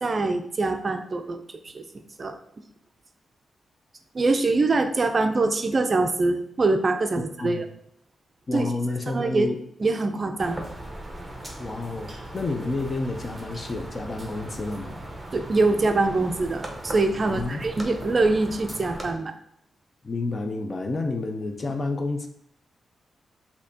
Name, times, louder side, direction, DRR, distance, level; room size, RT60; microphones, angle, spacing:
voice 1, 0.0-2.4 4.1-7.6 8.5-8.7 9.1-9.5 9.8-10.7 15.3-19.3, right 3 dB, 40° right, 7 dB, 0.4 m, -24 dB
voice 2, 8.5-9.6 11.6-15.0 17.2-17.6 20.0-22.3, left 2 dB, 40° left, 5 dB, 0.6 m, -30 dB
sound 1, 10.4-19.1, right 1 dB, 15° right, 0.8 m, -38 dB
6.3 x 2.8 x 2.8 m, 0.71 s
cardioid pair, 80°, 0 cm